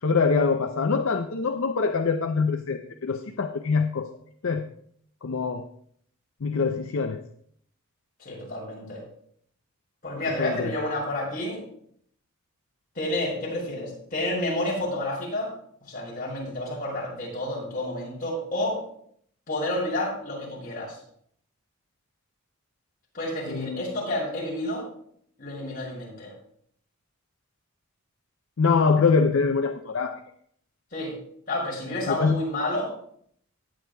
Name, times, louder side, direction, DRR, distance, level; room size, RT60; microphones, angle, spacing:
voice 1, 0.0-4.1 4.4-4.6 5.2-5.7 6.4-7.2 10.4-10.7 23.5-23.8 28.6-30.2 32.1-32.4, left 4 dB, 65° left, 6 dB, 0.5 m, -24 dB
voice 2, 8.2-9.0 10.0-11.6 13.0-15.5 15.8-18.8 19.5-21.0 23.1-24.9 25.4-26.3 30.9-31.1 31.5-32.9, left 1 dB, 40° left, -5 dB, 5.2 m, -30 dB
17.5 x 9.0 x 2.3 m, 0.65 s
head